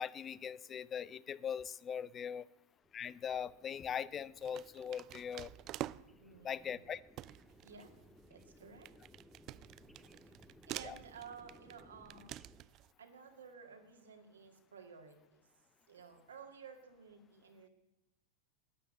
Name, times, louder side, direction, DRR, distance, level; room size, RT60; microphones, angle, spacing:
voice 1, 0.0-2.5 2.9-5.5 6.4-7.0 10.8-11.0, left 8 dB, 30° left, 19 dB, 0.5 m, -41 dB
sound 1, 2.8-12.6, equal, ahead, 0.8 m, -63 dB
sound 2, 3.3-3.7 4.4-6.3 6.8-6.9 7.2-12.9, right 14 dB, 40° right, 0.4 m, -48 dB
voice 2, 6.2-6.8 7.6-7.9 8.3-8.9 10.7-12.3 13.0-15.4 15.9-17.7, right 6 dB, 85° right, 4 dB, 2.1 m, -54 dB
12.0 x 9.8 x 7.7 m, 0.95 s
hypercardioid pair, 100°, 0 cm